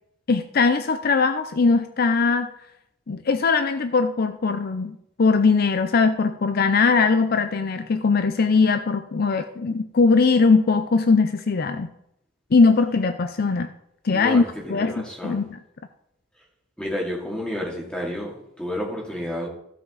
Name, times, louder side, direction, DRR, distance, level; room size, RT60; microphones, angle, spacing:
voice 1, 0.3-2.5 3.1-11.9 12.5-13.7 14.0-14.4 14.7-15.6, left 4 dB, 55° left, 9 dB, 0.5 m, -20 dB
voice 2, 14.1-15.4 16.8-19.5, left 1 dB, 5° left, -3 dB, 2.6 m, -30 dB
15.0 x 5.5 x 4.0 m, 0.77 s
head